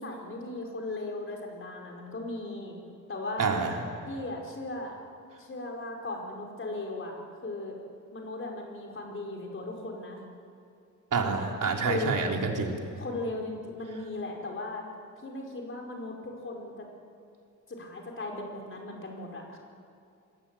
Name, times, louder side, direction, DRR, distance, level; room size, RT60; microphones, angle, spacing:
voice 1, 0.0-2.7 3.1-3.6 4.1-5.0 5.4-7.8 8.1-10.2 11.7-12.2 12.9-14.9 15.2-16.9 17.7-19.6, left 2 dB, 40° left, 0 dB, 4.7 m, -37 dB
voice 2, 3.4-3.7 11.1-12.8, right 4 dB, 75° right, 1 dB, 3.7 m, -27 dB
28.5 x 22.0 x 8.8 m, 2.5 s
wide cardioid pair, 160°, 32 cm